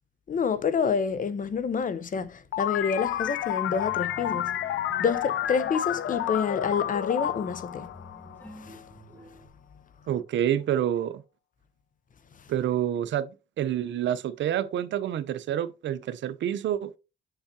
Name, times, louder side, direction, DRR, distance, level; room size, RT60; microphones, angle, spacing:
voice 1, 0.3-4.5 5.0-7.9 8.6-8.8, left 6 dB, 45° left, 0.7 m, -28 dB
sound 1, 2.5-8.8, left 11 dB, 80° left, 0.6 m, -30 dB
sound 2, 3.7-9.5, left 1 dB, 10° left, 1.7 m, -49 dB
voice 2, 10.1-11.2 12.5-17.0, right 10 dB, 70° right, 0.7 m, -28 dB
6.9 x 5.7 x 2.8 m
cardioid pair, 90°, 20 cm